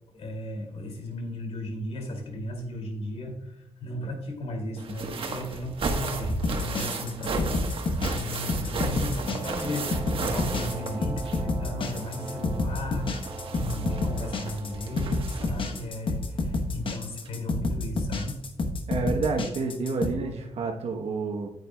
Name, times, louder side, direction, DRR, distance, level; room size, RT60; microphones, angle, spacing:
voice 1, 0.1-18.4, left 1 dB, 70° left, 2 dB, 2.7 m, -35 dB
sound 1, 4.8-11.5 11.8-15.8 16.8-16.9 17.3-17.4, right 3 dB, 55° right, 1.3 m, -34 dB
sound 2, 6.3-20.1, left 2 dB, 50° left, 1.1 m, -29 dB
sound 3, 9.3-16.5, right 2 dB, 35° right, 1.2 m, -40 dB
voice 2, 18.9-21.5, right 4 dB, 70° right, 2 dB, 1.1 m, -29 dB
9.4 x 9.4 x 2.3 m, 0.82 s
cardioid pair, 85°, 11 cm